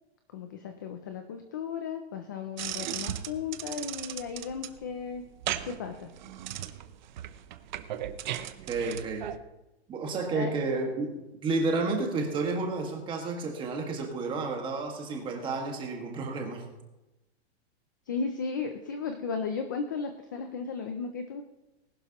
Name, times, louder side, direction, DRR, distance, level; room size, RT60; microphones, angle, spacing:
voice 1, 0.3-5.2 5.6-6.1 10.3-10.5 18.1-21.4, left 5 dB, 20° left, 7 dB, 0.3 m, -35 dB
sound 1, 2.6-9.4, right 11 dB, 45° right, 0.7 m, -37 dB
voice 2, 8.7-9.3 9.9-11.1 11.4-16.6, right 3 dB, 15° right, 2 dB, 1.7 m, -31 dB
19.5 x 11.5 x 2.9 m, 1.0 s
supercardioid pair, 170°, 33 cm